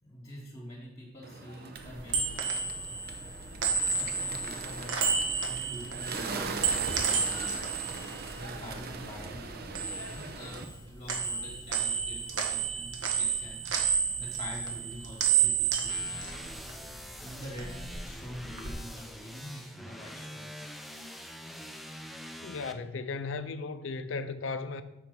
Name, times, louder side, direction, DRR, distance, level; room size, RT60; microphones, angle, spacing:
voice 1, 0.0-2.4 3.7-5.0 5.5-7.6 8.1-13.6 14.2-16.3 17.2-20.5, equal, 35° left, 1.3 m, -45 dB
Bird, 1.2-10.6, right 4 dB, 55° right, 0.7 m, -41 dB
sound 1, 1.8-9.1 9.4-10.8 11.1-17.1 17.4-18.7, right 6 dB, 80° right, 1.2 m, -31 dB
sound 2, 15.9-22.7, equal, ahead, 0.5 m, -45 dB
voice 2, 22.4-24.8, left 4 dB, 80° left, 0.5 m, -36 dB
6.6 x 4.6 x 5.2 m
head